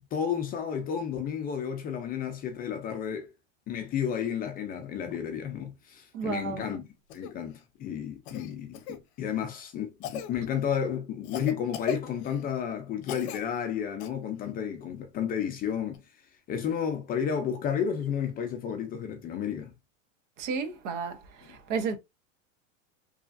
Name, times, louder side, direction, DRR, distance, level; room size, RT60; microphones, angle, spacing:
voice 1, 0.1-3.3 3.7-6.8 7.1-16.0 16.5-19.7, left 8 dB, 25° left, 0.4 m, -32 dB
voice 2, 6.1-6.6 20.4-22.0, right 5 dB, 65° right, 0.9 m, -32 dB
Cough, 7.1-7.3 8.3-9.0 10.0-10.3 11.2-12.5 13.0-13.4 14.0-14.1 15.9-16.0, left 8 dB, 55° left, 0.8 m, -38 dB
3.1 x 2.4 x 2.4 m
supercardioid pair, 120°, 39 cm